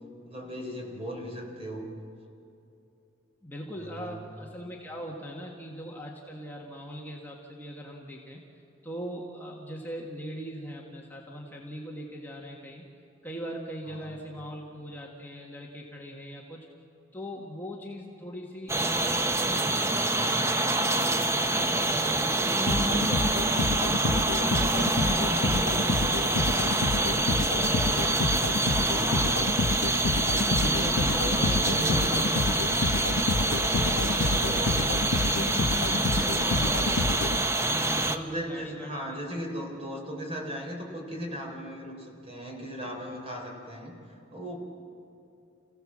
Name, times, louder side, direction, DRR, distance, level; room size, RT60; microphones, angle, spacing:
voice 1, 0.3-1.9 3.8-4.2 13.9-14.2 31.3-32.6 36.5-36.9 38.0-43.9 44.3-44.6, equal, 30° right, 1 dB, 4.1 m, -38 dB
voice 2, 3.4-12.8 13.2-16.7 17.1-26.2 26.5-28.1 28.4-29.7 30.3-32.8 33.1-35.7 36.1-39.2, equal, 10° left, -2 dB, 1.8 m, -40 dB
sound 1, 18.7-38.2, right 2 dB, 15° right, 0.8 m, -26 dB
sound 2, 22.7-37.9, left 3 dB, 80° left, 0.6 m, -29 dB
29.5 x 16.0 x 7.6 m, 2.7 s
head